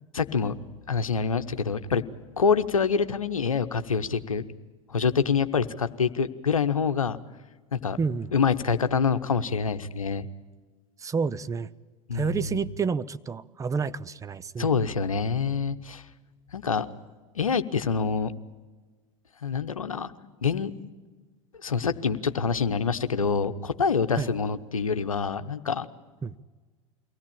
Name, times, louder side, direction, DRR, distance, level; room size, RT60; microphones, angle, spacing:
voice 1, 0.1-0.5 0.9-2.0 2.4-4.4 4.9-7.2 7.7-8.0 8.3-10.3 12.1-12.6 14.6-16.0 16.5-16.9 17.4-18.3 19.4-20.1 20.4-20.7 21.6-25.9, left 6 dB, 90° left, 10 dB, 0.9 m, -26 dB
voice 2, 8.0-8.3 11.0-11.7 12.1-14.7 24.2-24.3 26.2-26.3, right 5 dB, 20° right, 15 dB, 0.6 m, -29 dB
23.5 x 17.0 x 8.7 m, 1.4 s
hypercardioid pair, 85°, 17 cm